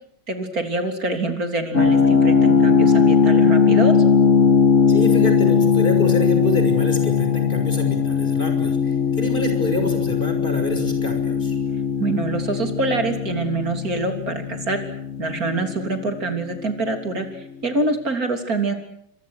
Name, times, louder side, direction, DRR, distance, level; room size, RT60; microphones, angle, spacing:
voice 1, 0.3-4.0 12.0-14.8 15.2-18.7, right 3 dB, 45° right, 6 dB, 3.9 m, -25 dB
sound 1, 1.7-16.5, left 6 dB, 40° left, 1.6 m, -19 dB
voice 2, 4.9-11.5, left 1 dB, 25° left, 5 dB, 6.2 m, -27 dB
28.5 x 25.5 x 6.5 m, 0.69 s
omnidirectional pair, 2.2 m